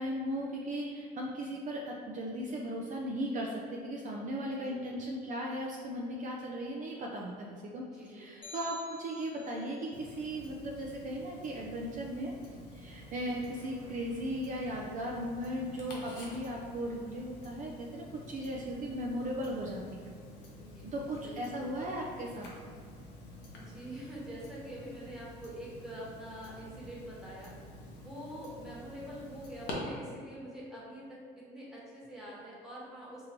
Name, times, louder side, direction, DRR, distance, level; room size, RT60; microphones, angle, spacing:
voice 1, 0.0-12.3 12.7-20.1 20.8-22.5, equal, 50° right, -1 dB, 0.4 m, -37 dB
voice 2, 7.9-8.3 20.5-21.6 23.6-27.5 28.0-33.3, equal, 5° right, -8 dB, 1.2 m, -45 dB
sound 1, 8.4-9.8, left 4 dB, 30° left, 0.7 m, -49 dB
Tick-tock, 9.9-29.7, left 1 dB, 80° left, 0.8 m, -50 dB
4.7 x 2.6 x 2.9 m, 2.1 s
cardioid pair, 110°, 17 cm